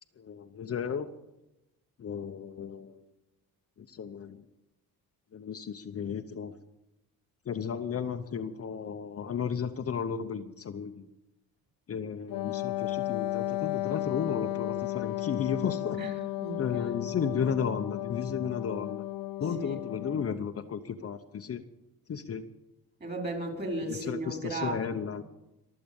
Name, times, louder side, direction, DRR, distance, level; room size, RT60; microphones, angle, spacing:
voice 1, 0.2-1.1 2.0-3.0 3.8-4.4 5.3-6.5 7.5-11.1 11.9-16.0 16.6-19.0 19.4-21.6 22.1-22.4 23.9-25.2, left 7 dB, 40° left, 0.9 m, -34 dB
Wind instrument woodwind instrument, 12.3-20.4, left 16 dB, 70° left, 0.6 m, -34 dB
voice 2, 16.0-16.9 19.6-19.8 23.0-25.2, right 2 dB, 25° right, 4.5 m, -36 dB
23.0 x 7.8 x 7.1 m
cardioid pair, 110°, 36 cm